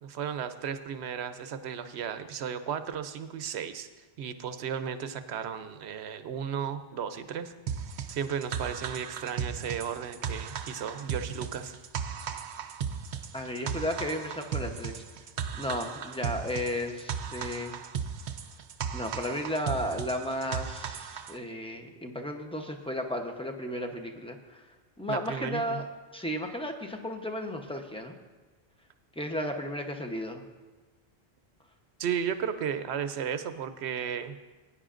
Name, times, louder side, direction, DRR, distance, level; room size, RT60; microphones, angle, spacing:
voice 1, 0.0-3.9 4.2-7.5 8.1-11.7 12.1-12.2 25.1-25.8 32.0-34.4, right 8 dB, 80° right, 10 dB, 0.9 m, -34 dB
sound 1, 7.7-21.4, right 7 dB, 55° right, 0.6 m, -36 dB
voice 2, 13.3-15.0 15.6-17.7 18.9-24.6 25.0-25.8 26.1-28.2 29.2-30.4, equal, 5° left, 4 dB, 0.7 m, -34 dB
18.0 x 9.8 x 2.5 m, 1.2 s
omnidirectional pair, 1.1 m